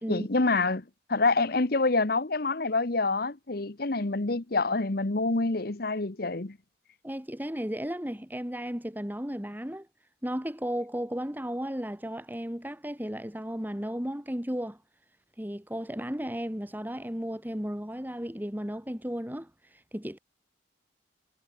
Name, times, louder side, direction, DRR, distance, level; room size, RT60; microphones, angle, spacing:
voice 1, 0.1-6.6, left 3 dB, 50° left, 1.1 m, -27 dB
voice 2, 7.0-9.9 10.2-14.8 15.4-20.2, equal, 10° right, 2.3 m, -34 dB
head